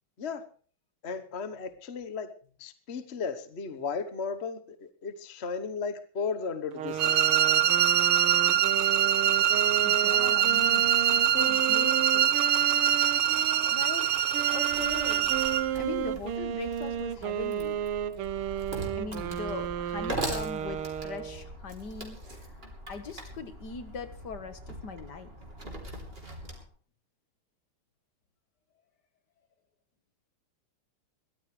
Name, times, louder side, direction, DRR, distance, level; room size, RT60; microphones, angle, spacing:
voice 1, 1.0-2.3 2.6-7.3, left 5 dB, 40° left, 1.1 m, -35 dB
sound 1, 6.7-13.7 14.3-21.5, right 10 dB, 85° right, 1.9 m, -33 dB
sound 2, 7.0-15.7, right 10 dB, 65° right, 1.5 m, -24 dB
voice 2, 9.8-12.4 13.7-15.4 15.7-17.8 18.9-22.2 22.9-25.3, left 4 dB, 55° left, 2.0 m, -40 dB
Wood, 14.7-26.6, right 1 dB, 25° right, 3.4 m, -41 dB
22.5 x 15.0 x 3.3 m
omnidirectional pair, 2.4 m